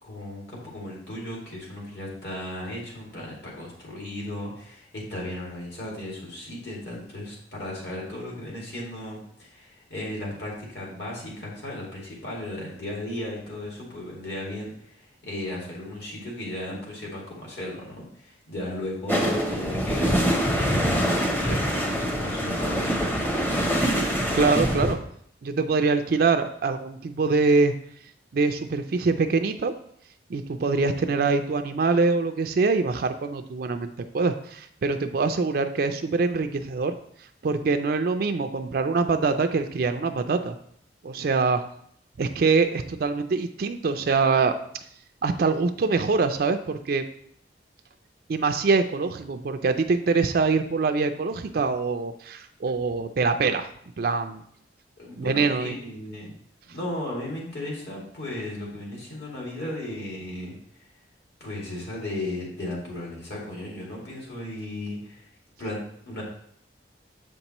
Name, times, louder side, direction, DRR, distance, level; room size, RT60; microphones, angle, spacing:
voice 1, 0.0-21.0 21.4-23.1 55.0-56.3 56.7-60.5 61.4-65.3 65.6-66.2, left 1 dB, 65° left, -4 dB, 2.3 m, -35 dB
sound 1, 19.1-24.9, equal, 10° left, 0.7 m, -24 dB
voice 2, 24.3-25.0 25.4-27.7 28.3-29.7 30.3-36.9 37.4-40.6 41.0-41.6 42.2-44.5 45.2-47.1 48.3-53.7 54.0-54.4 55.2-55.8, right 4 dB, 55° right, 7 dB, 0.4 m, -24 dB
7.7 x 5.4 x 3.0 m, 0.67 s
head